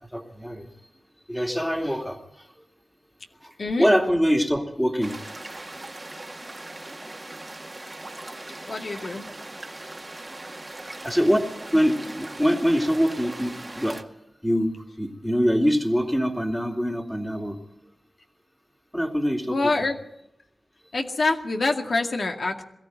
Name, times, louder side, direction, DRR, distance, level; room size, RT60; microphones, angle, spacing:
voice 1, 0.1-0.7 1.3-2.2 3.8-5.1 9.1-9.3 11.0-11.4 11.7-14.0 14.4-17.6 18.9-19.6, equal, 5° left, 3 dB, 2.6 m, -23 dB
voice 2, 3.6-3.9 8.7-9.3 19.5-20.0 20.9-22.6, left 3 dB, 60° left, 3 dB, 2.2 m, -25 dB
sound 1, 5.0-14.0, right 2 dB, 25° right, 1.9 m, -39 dB
22.5 x 15.0 x 9.3 m, 0.83 s
wide cardioid pair, 115°, 0 cm